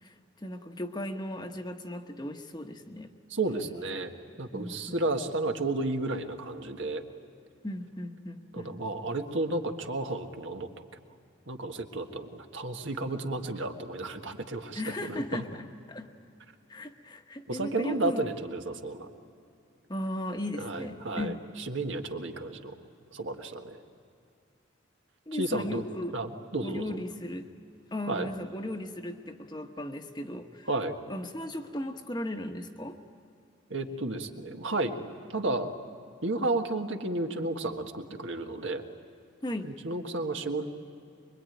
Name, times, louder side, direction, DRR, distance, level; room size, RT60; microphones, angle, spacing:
voice 1, 0.0-3.1 4.5-5.1 7.6-8.8 14.7-16.1 16.7-18.2 19.9-21.4 25.3-26.1 26.6-27.5 27.9-30.7 31.1-33.0 39.4-39.8, left 1 dB, 20° left, 5 dB, 1.1 m, -36 dB
voice 2, 3.3-4.1 4.4-7.0 8.5-10.7 11.5-15.4 17.5-19.1 20.6-22.8 23.1-23.8 25.3-25.8 26.1-27.0 28.1-28.3 30.7-31.0 33.7-35.7 36.2-38.8 39.6-40.7, right 2 dB, 70° right, 4 dB, 1.6 m, -32 dB
24.5 x 23.0 x 9.2 m, 2.6 s
head